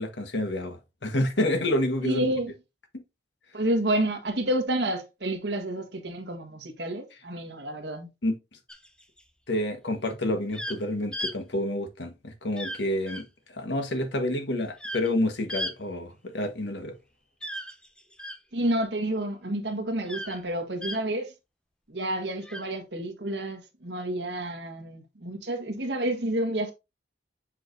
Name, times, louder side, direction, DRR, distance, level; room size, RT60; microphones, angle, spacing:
voice 1, 0.0-2.3 2.9-3.0 8.2-8.4 9.5-16.9, left 1 dB, 85° left, 1.4 m, -29 dB
voice 2, 2.0-2.5 3.5-8.1 18.5-21.3 21.9-26.7, right 1 dB, 75° right, 1.5 m, -29 dB
sound 1, 8.7-9.2 10.5-10.8 11.1-11.3 12.6-12.8 13.1-13.2 14.8-15.1 15.5-15.7 17.4-18.4 20.1-20.4 20.8-21.0 22.4-22.6, equal, 5° left, 0.7 m, -35 dB
7.5 x 4.8 x 2.6 m
head